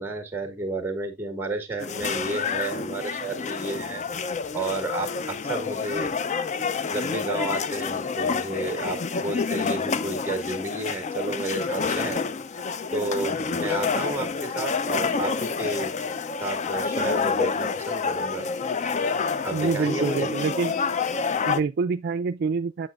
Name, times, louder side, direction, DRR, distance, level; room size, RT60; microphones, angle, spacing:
voice 1, 0.0-4.0 4.5-6.1 6.9-12.2 12.9-16.0 16.4-18.5 19.4-20.3, right 2 dB, 10° right, 1.6 m, -31 dB
sound 1, 1.8-21.6, left 5 dB, 35° left, 0.4 m, -28 dB
voice 2, 19.5-20.8 21.4-22.9, right 5 dB, 50° right, 0.3 m, -26 dB
7.9 x 7.0 x 2.4 m
head